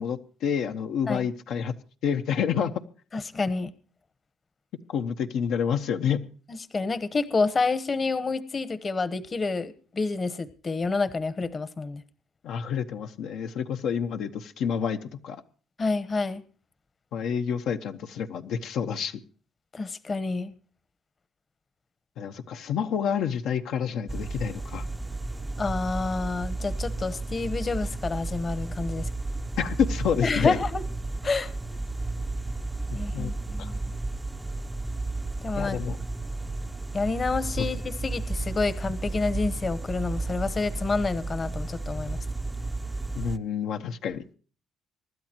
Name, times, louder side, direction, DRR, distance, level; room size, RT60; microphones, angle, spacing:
voice 1, 0.0-1.7 2.0-2.7 4.9-6.2 12.4-15.4 17.1-19.2 22.2-24.8 29.6-30.6 33.1-33.3 33.6-33.7 35.6-36.0 37.6-37.7 43.1-44.2, left 7 dB, 75° left, 6 dB, 1.1 m, -28 dB
voice 2, 3.1-3.7 6.5-12.0 15.8-16.4 19.7-20.5 25.6-29.1 30.2-30.8 31.2-31.5 32.9-33.7 35.4-35.8 36.9-42.2, left 3 dB, 30° left, 14 dB, 1.1 m, -28 dB
sound 1, 24.1-43.4, right 2 dB, 10° right, 0.6 m, -33 dB
25.0 x 12.0 x 2.9 m, 0.39 s
cardioid pair, 115°, 0 cm